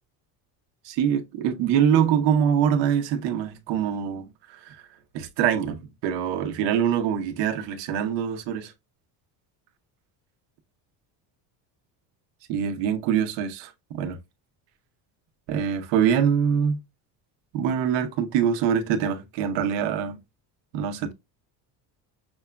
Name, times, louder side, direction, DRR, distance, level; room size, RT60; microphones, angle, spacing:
voice 1, 0.8-4.8 5.1-8.7 12.5-13.7 14.0-14.2 15.5-16.8 17.5-20.2 20.7-21.1, right 8 dB, 85° right, 1.0 m, -24 dB
6.2 x 2.2 x 2.2 m
cardioid pair, 150°, 42 cm